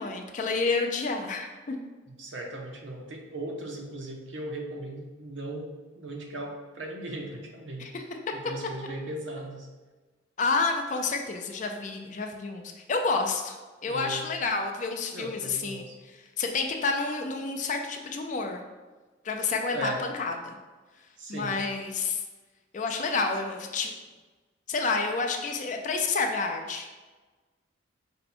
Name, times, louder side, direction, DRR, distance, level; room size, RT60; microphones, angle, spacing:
voice 1, 0.0-1.8 7.8-8.3 10.4-18.6 19.2-20.6 20.9-22.2 22.7-24.0 24.7-26.9, left 4 dB, 40° left, 4 dB, 0.4 m, -30 dB
voice 2, 2.2-7.9 8.3-9.7 13.9-14.3 15.1-16.0 19.7-20.0 21.2-21.5, right 1 dB, 70° right, 1 dB, 0.8 m, -38 dB
5.2 x 2.2 x 4.3 m, 1.3 s
head